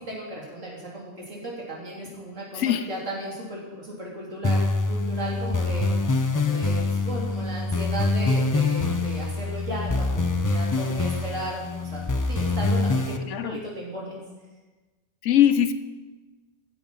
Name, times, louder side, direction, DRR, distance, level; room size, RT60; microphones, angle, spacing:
voice 1, 0.0-5.9 6.3-11.6 11.9-14.2, right 1 dB, 75° right, -4 dB, 4.0 m, -35 dB
voice 2, 2.5-2.9 13.3-13.6 15.2-15.7, left 10 dB, 70° left, 12 dB, 1.0 m, -21 dB
sound 1, 4.4-13.2, left 3 dB, 25° left, 0.5 m, -25 dB
15.0 x 9.1 x 5.6 m, 1.2 s
omnidirectional pair, 1.3 m